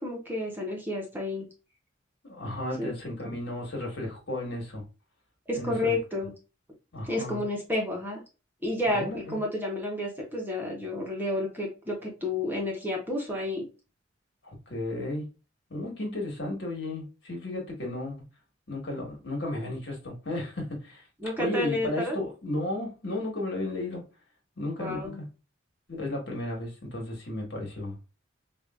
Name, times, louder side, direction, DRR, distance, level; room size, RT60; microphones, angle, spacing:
voice 1, 0.0-1.5 2.8-2.9 5.5-6.3 7.0-8.2 8.6-13.6 21.2-22.2 24.8-25.2, left 1 dB, 10° right, -1 dB, 1.1 m, -30 dB
voice 2, 2.2-4.8 5.5-6.0 6.9-7.4 8.9-9.4 14.4-15.3 15.7-18.2 18.7-21.0 21.4-24.0 24.6-25.3 25.9-28.0, left 2 dB, 60° left, 0 dB, 1.6 m, -34 dB
4.9 x 2.5 x 2.4 m, 0.31 s
head